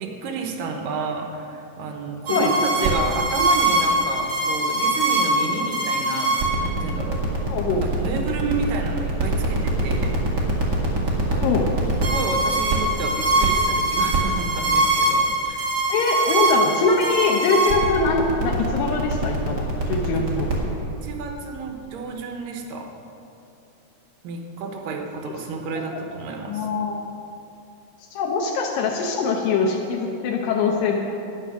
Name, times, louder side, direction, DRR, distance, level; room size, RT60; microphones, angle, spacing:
voice 1, 0.0-7.2 7.7-10.2 11.0-11.4 12.0-15.7 20.8-22.9 24.2-26.7, right 4 dB, 80° right, 3 dB, 2.6 m, -31 dB
sound 1, 2.3-20.5, right 2 dB, 35° right, 2.0 m, -22 dB
voice 2, 7.5-7.8 11.4-11.7 15.9-20.5 25.3-25.4 25.8-26.0 26.5-27.0 28.1-31.0, left 4 dB, 85° left, -1 dB, 2.6 m, -23 dB
11.5 x 9.5 x 6.2 m, 2.8 s
omnidirectional pair, 3.9 m